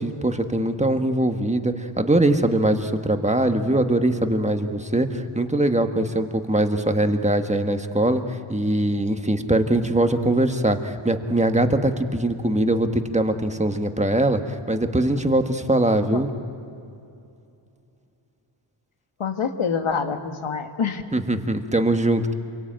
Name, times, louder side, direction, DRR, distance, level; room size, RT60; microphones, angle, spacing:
voice 1, 0.0-16.3 21.1-22.3, right 1 dB, 15° right, 7 dB, 1.5 m, -22 dB
voice 2, 19.2-21.0, left 6 dB, 75° left, 6 dB, 1.9 m, -26 dB
28.0 x 22.5 x 9.1 m, 2.6 s
wide cardioid pair, 105°, 50 cm